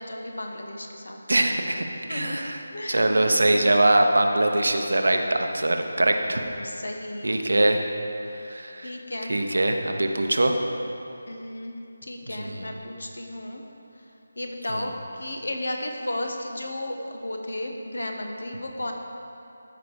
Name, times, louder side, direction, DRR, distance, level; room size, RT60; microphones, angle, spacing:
voice 1, 0.0-1.2 2.1-3.7 6.0-7.6 8.8-9.4 11.2-11.7 12.0-13.6 14.4-18.9, left 1 dB, 65° left, 3 dB, 1.1 m, -34 dB
voice 2, 1.3-1.8 2.1-2.6 2.9-6.4 7.2-7.8 8.5-8.9 9.3-10.6 12.4-12.7 14.7-14.8, right 1 dB, 65° right, 4 dB, 0.9 m, -22 dB
14.0 x 5.1 x 4.9 m, 2.7 s
figure-of-eight pair, 155°, 0 cm